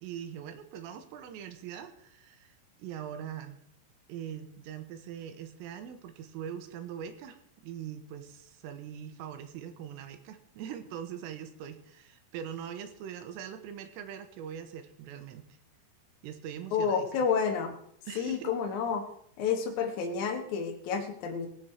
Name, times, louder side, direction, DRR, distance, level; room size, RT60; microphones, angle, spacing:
voice 1, 0.0-3.6 4.1-15.5 16.2-17.1 18.1-18.5, right 9 dB, 85° right, 9 dB, 3.7 m, -42 dB
voice 2, 16.7-17.7 18.1-19.1 19.4-21.5, left 6 dB, 75° left, 2 dB, 1.7 m, -30 dB
19.5 x 8.1 x 4.5 m, 0.67 s
omnidirectional pair, 5.8 m